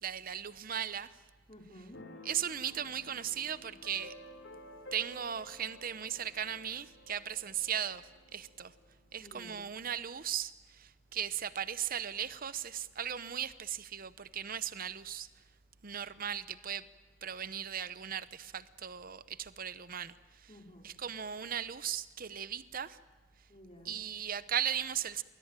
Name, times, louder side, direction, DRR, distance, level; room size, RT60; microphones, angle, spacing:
voice 1, 0.0-1.2 2.2-4.2 4.9-8.7 9.1-15.3 15.8-16.9 17.2-20.5 20.8-23.0 23.8-25.2, right 9 dB, 45° right, 0.8 m, -37 dB
voice 2, 1.5-2.0 9.2-9.7 20.5-20.9 23.5-24.0, equal, 30° left, 4.6 m, -53 dB
Keyboard (musical), 1.9-9.4, left 1 dB, 75° left, 3.4 m, -53 dB
28.5 x 21.5 x 8.9 m
head